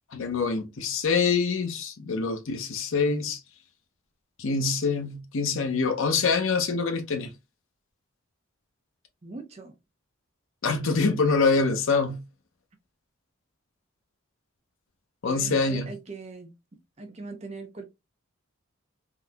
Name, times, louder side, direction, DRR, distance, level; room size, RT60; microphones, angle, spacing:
voice 1, 0.1-3.4 4.4-7.3 10.6-12.2 15.2-15.9, left 4 dB, 65° left, 0.6 m, -25 dB
voice 2, 9.2-9.7 15.2-16.5 17.0-17.9, right 3 dB, 30° right, 0.5 m, -40 dB
3.7 x 2.7 x 2.3 m
head